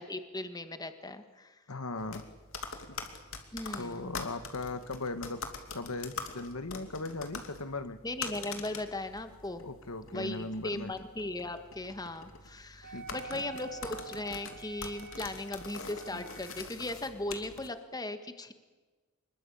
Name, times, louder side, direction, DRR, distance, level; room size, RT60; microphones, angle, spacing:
voice 1, 0.0-1.5 3.5-4.1 8.0-9.6 10.1-18.5, left 2 dB, 20° left, 9 dB, 1.6 m, -38 dB
voice 2, 1.7-2.2 3.8-5.4 5.7-8.0 9.6-10.9 12.9-13.4, left 2 dB, 80° left, 11 dB, 1.6 m, -38 dB
sound 1, 2.0-17.7, left 4 dB, 65° left, 2.9 m, -44 dB
Wind instrument woodwind instrument, 12.8-16.7, right 5 dB, 45° right, 1.0 m, -48 dB
26.0 x 21.5 x 8.6 m, 1.2 s
head